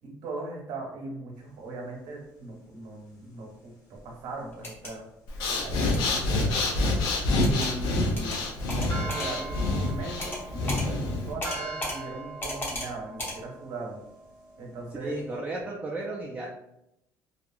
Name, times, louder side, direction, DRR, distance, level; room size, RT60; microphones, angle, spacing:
voice 1, 0.0-5.1 5.5-6.4 7.3-8.4 8.8-14.0 14.6-15.1 15.6-15.7, right 2 dB, 75° right, -1 dB, 0.9 m, -39 dB
sound 1, 4.5-4.9 5.9-6.2 7.4-7.7 8.2-8.4 8.7-9.3 10.2-10.4 10.7-10.9 11.4-12.0 12.4-12.9 13.2-13.4, left 1 dB, 30° left, 1.0 m, -34 dB
Breathing, 5.3-11.3, left 2 dB, 85° left, 0.6 m, -27 dB
sound 2, 8.9-15.4, right 3 dB, 60° left, 0.9 m, -42 dB
voice 2, 15.0-16.5, right 2 dB, 15° right, -3 dB, 0.4 m, -34 dB
2.8 x 2.5 x 2.3 m, 0.82 s
cardioid pair, 115°, 7 cm